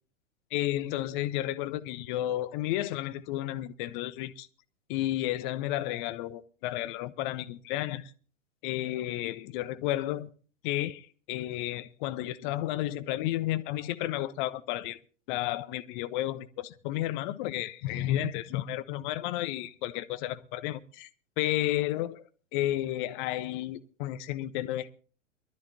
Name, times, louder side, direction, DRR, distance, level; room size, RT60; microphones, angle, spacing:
voice 1, 0.5-4.5 4.9-8.1 8.6-10.3 10.6-15.0 15.3-21.1 21.4-22.2 22.5-24.9, left 14 dB, 40° left, 1.1 m, -32 dB
23.5 x 13.0 x 2.8 m
figure-of-eight pair, 105°, 38 cm